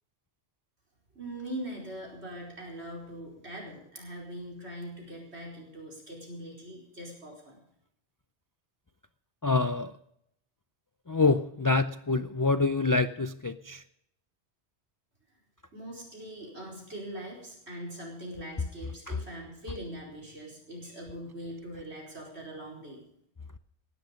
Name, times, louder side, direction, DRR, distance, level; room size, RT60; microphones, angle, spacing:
voice 1, 1.1-7.6 15.7-23.0, right 1 dB, 70° right, -2 dB, 5.0 m, -42 dB
voice 2, 9.4-9.9 11.1-13.8 19.1-19.2, left 3 dB, 30° left, 12 dB, 0.4 m, -26 dB
18.5 x 12.0 x 5.2 m, 0.75 s
omnidirectional pair, 1.2 m